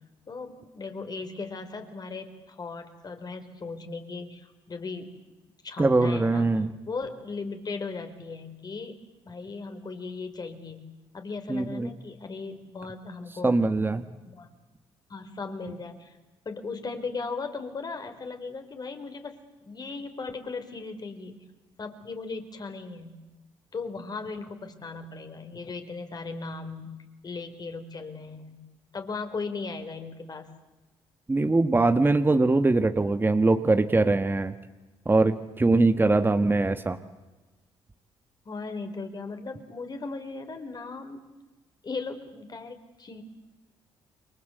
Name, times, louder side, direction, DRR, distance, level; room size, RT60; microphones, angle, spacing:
voice 1, 0.3-5.1 5.6-10.9 11.1-13.6 13.9-14.5 15.1-16.2 16.4-21.4 21.8-23.1 23.7-27.0 27.2-28.5 28.9-30.5 38.4-41.2 41.8-43.2, left 4 dB, 40° left, 7 dB, 4.6 m, -37 dB
voice 2, 5.8-6.7 11.5-11.9 13.4-14.0 31.3-34.5 35.0-37.0, right 2 dB, 20° right, 9 dB, 1.6 m, -22 dB
29.0 x 23.5 x 8.1 m, 1.1 s
supercardioid pair, 75°, 11 cm